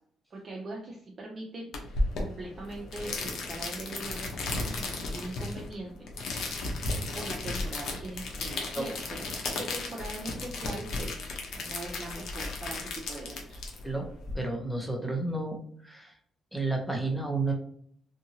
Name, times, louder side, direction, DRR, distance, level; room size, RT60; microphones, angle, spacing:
voice 1, 0.3-4.3 4.7-5.9 7.1-11.2 11.5-13.7, right 2 dB, 40° right, -2 dB, 0.6 m, -41 dB
sound 1, 1.7-14.3, left 2 dB, 75° left, 0.7 m, -34 dB
voice 2, 14.3-15.6 15.8-16.1 16.5-17.5, right 2 dB, ahead, 1 dB, 0.8 m, -31 dB
2.8 x 2.5 x 2.7 m, 0.63 s
cardioid pair, 90°, 0 cm